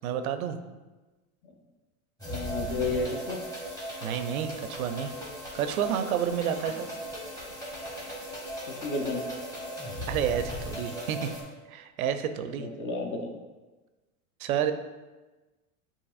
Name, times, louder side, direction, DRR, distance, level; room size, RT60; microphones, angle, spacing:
voice 1, 0.0-0.6 4.0-5.1 5.5-6.9 10.1-11.3 11.7-12.7 14.4-14.7, right 9 dB, 90° right, 9 dB, 0.5 m, -30 dB
sound 1, 2.2-11.4, equal, 10° left, 1.3 m, -38 dB
voice 2, 2.3-3.4 6.7-6.8 8.7-9.3 12.4-13.3, left 2 dB, 30° left, 3 dB, 0.6 m, -32 dB
6.9 x 2.9 x 2.4 m, 1.2 s
supercardioid pair, 120°, 42 cm